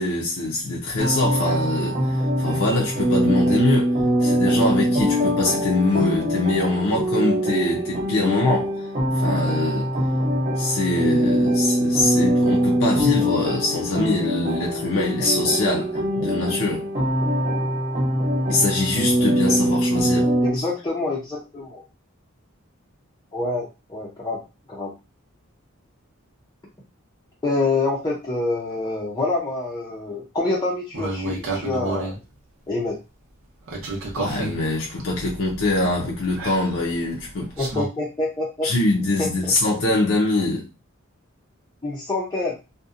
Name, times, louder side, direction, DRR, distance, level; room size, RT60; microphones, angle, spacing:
voice 1, 0.0-9.9 10.6-16.9 18.5-20.7 34.2-37.5 38.6-40.7, left 2 dB, 80° left, 0.5 m, -23 dB
sound 1, 1.0-20.5, equal, 35° right, 0.7 m, -22 dB
voice 2, 20.4-21.8 23.3-24.4 24.7-24.9 27.4-32.1 32.7-33.0 37.6-38.7 39.2-39.5 41.8-42.6, left 2 dB, 20° left, 0.5 m, -26 dB
sound 2, 30.9-32.2 33.7-37.9, right 2 dB, 75° right, 0.7 m, -31 dB
2.7 x 2.1 x 2.4 m
head